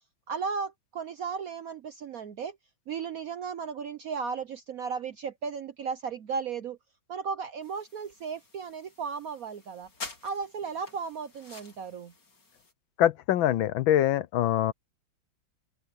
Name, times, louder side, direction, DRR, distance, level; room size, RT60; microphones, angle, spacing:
voice 1, 0.3-2.5 2.9-6.8 7.1-9.9 10.2-12.1, right 5 dB, 65° right, 0.9 m, -35 dB
sound 1, 7.6-12.7, left 3 dB, 55° left, 4.7 m, -48 dB
voice 2, 13.0-14.7, left 12 dB, 75° left, 1.4 m, -24 dB
omnidirectional pair, 2.2 m